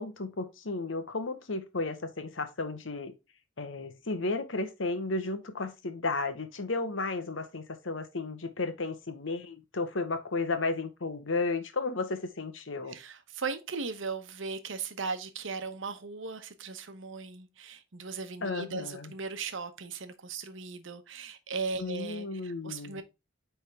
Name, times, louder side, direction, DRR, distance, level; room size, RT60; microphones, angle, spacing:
voice 1, 0.0-3.1 3.6-13.0 18.4-19.1 21.8-23.0, left 3 dB, 75° left, 1.1 m, -33 dB
voice 2, 12.9-23.0, right 4 dB, 70° right, 0.9 m, -38 dB
8.8 x 3.5 x 3.5 m
head